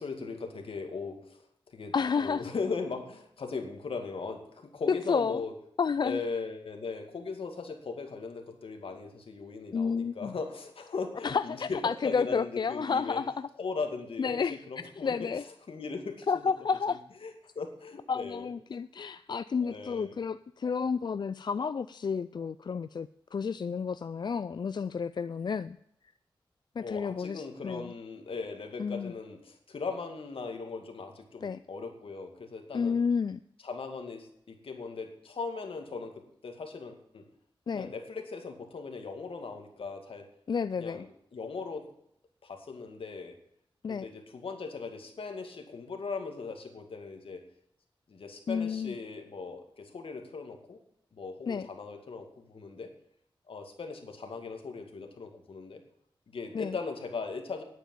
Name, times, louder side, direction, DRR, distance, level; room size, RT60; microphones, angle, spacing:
voice 1, 0.0-5.5 6.0-13.2 13.6-16.5 16.9-18.5 19.6-20.1 26.8-33.0 33.6-37.3 37.7-40.3 40.8-41.9 42.4-43.3 43.9-47.4 48.1-50.8 51.1-52.9 53.5-55.8 56.3-57.6, left 4 dB, 80° left, 4 dB, 2.1 m, -39 dB
voice 2, 1.9-2.4 4.9-5.4 5.8-6.2 9.7-10.3 11.2-13.5 14.2-14.6 15.0-15.4 16.3-17.0 18.1-25.8 26.8-27.9 28.8-29.1 31.4-31.6 32.7-33.4 37.7-37.9 40.5-41.1 43.8-44.1 48.5-49.0 51.5-51.7 56.5-56.7, left 5 dB, 50° left, 14 dB, 0.3 m, -31 dB
10.0 x 9.0 x 7.2 m, 0.72 s
wide cardioid pair, 90°, 9 cm